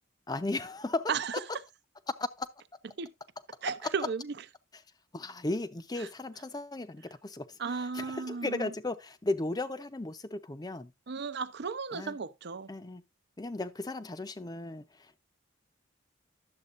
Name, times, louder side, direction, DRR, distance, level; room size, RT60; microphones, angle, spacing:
voice 1, 0.3-1.4 2.2-2.5 3.8-3.9 5.1-10.9 11.9-12.2 12.7-13.0 13.4-15.2, left 2 dB, 20° left, 0.5 m, -36 dB
voice 2, 1.1-1.4 3.0-3.1 3.6-4.3 6.0-6.1 7.6-8.7 11.1-12.7, right 5 dB, 55° right, 0.6 m, -34 dB
11.5 x 7.5 x 2.5 m
head